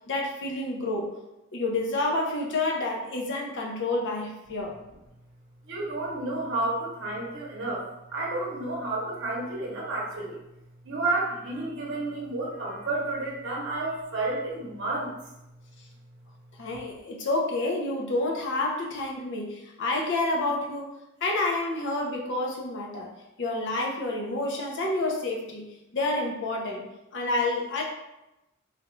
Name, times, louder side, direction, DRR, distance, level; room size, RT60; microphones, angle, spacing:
voice 1, 0.1-1.1 1.5-4.7 16.6-20.9 21.2-23.1 23.4-25.6 25.9-26.8 27.1-27.8, left 2 dB, 60° left, 0 dB, 0.7 m, -29 dB
voice 2, 5.7-7.8 8.1-10.4 10.8-15.1, right 2 dB, 55° right, -3 dB, 0.8 m, -31 dB
3.5 x 2.3 x 3.0 m, 0.94 s
head